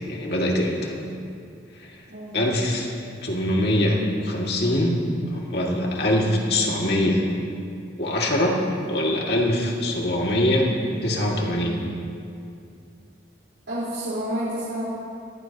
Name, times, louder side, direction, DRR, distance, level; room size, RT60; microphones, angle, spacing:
voice 1, 0.1-0.9 1.8-2.0 2.3-2.9 3.2-5.0 5.3-7.2 8.0-8.6 8.9-10.7 11.0-11.8, left 1 dB, 60° left, -2 dB, 2.3 m, -23 dB
voice 2, 2.1-2.5 13.7-14.8, right 1 dB, 85° right, -11 dB, 4.4 m, -29 dB
22.0 x 15.5 x 3.0 m, 2.4 s
head